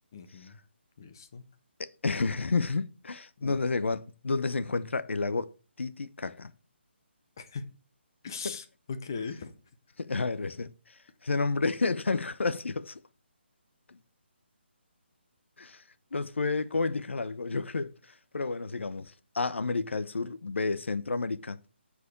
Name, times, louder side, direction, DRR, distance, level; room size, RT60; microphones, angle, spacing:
voice 1, 0.1-0.6 1.0-1.4 3.4-3.6 7.4-7.7 8.2-9.5, left 5 dB, 20° left, 0.6 m, -39 dB
voice 2, 1.8-5.5 5.8-6.5 8.4-8.6 10.0-13.0 13.9-14.0 15.6-15.8 16.1-21.7, left 3 dB, 90° left, 0.8 m, -31 dB
8.5 x 4.9 x 6.6 m
hypercardioid pair, 180°, 6 cm